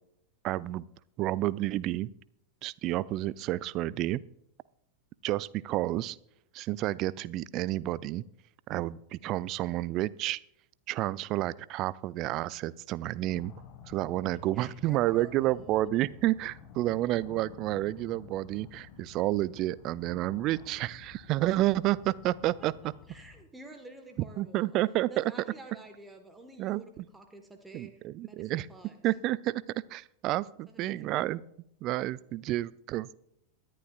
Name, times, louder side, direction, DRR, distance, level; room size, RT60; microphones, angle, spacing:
voice 1, 0.4-0.8 1.2-2.1 2.6-4.2 5.2-6.2 6.5-8.2 8.7-10.4 10.9-13.5 13.9-22.9 24.4-25.3 26.6-26.8 27.7-28.7 29.0-29.6 29.9-31.4 31.8-33.2, right 16 dB, 40° right, 20 dB, 0.3 m, -30 dB
sound 1, 13.2-23.4, left 6 dB, 35° left, 1.5 m, -51 dB
voice 2, 14.3-15.9 22.8-24.8 25.1-29.0 30.7-31.3, right 2 dB, 10° right, 5 dB, 1.3 m, -50 dB
23.5 x 10.5 x 2.3 m, 0.77 s
figure-of-eight pair, 90°, 0 cm